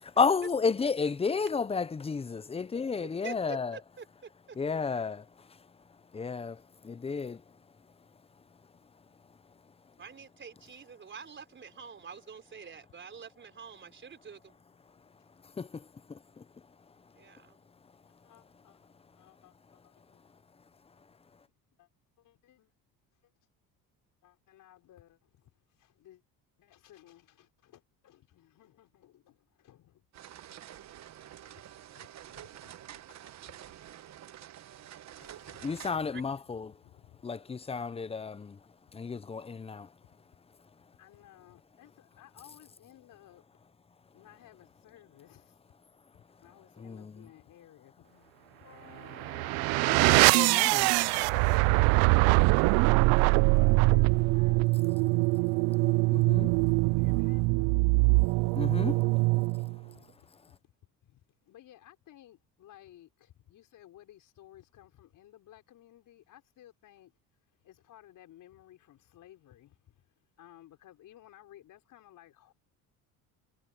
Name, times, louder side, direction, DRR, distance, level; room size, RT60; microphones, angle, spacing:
voice 1, 0.2-3.8 4.6-5.2 6.1-7.4 15.6-15.8 16.1-16.4 35.6-36.7 37.2-38.6 38.9-39.9 46.8-47.1 49.9-50.9 56.1-56.5 58.6-59.0, left 5 dB, 15° left, 0.7 m, -32 dB
voice 2, 3.2-4.6 10.0-14.6 17.2-17.6 36.1-36.2, right 6 dB, 30° right, 4.2 m, -46 dB
voice 3, 18.1-18.8 19.1-20.2 21.8-21.9 22.2-22.7 23.2-23.3 24.2-26.2 26.6-30.1 30.9-33.8 35.5-37.3 38.8-38.9 40.0-40.2 41.0-43.4 44.1-45.6 46.1-48.3 49.6-51.1 51.4-52.0 52.3-52.4 53.5-54.6 56.6-57.6 58.1-58.2 59.9-60.7 61.0-67.1 67.6-72.5, left 13 dB, 60° left, 5.7 m, -58 dB
sound 1, 30.1-36.0, right 11 dB, 50° right, 1.2 m, -48 dB
Wind instrument woodwind instrument, 48.6-53.2, left 12 dB, 45° left, 1.6 m, -50 dB
sound 2, 49.1-59.8, right 27 dB, 85° right, 0.5 m, -23 dB
cardioid pair, 110°, 36 cm